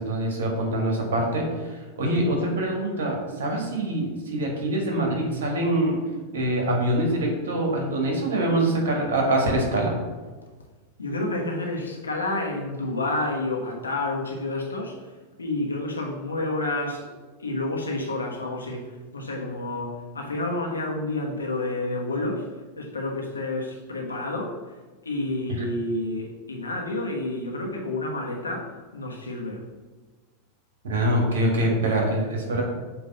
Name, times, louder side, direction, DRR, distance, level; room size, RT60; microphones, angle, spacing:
voice 1, 0.0-1.5 2.0-6.0 6.3-10.0 30.8-32.6, right 1 dB, 60° right, 0 dB, 1.7 m, -24 dB
voice 2, 11.0-15.0 15.4-17.1 17.4-22.5 22.8-24.5 25.0-29.6, left 2 dB, 75° left, 0 dB, 1.3 m, -29 dB
7.9 x 3.1 x 5.5 m, 1.3 s
figure-of-eight pair, 90°, 0 cm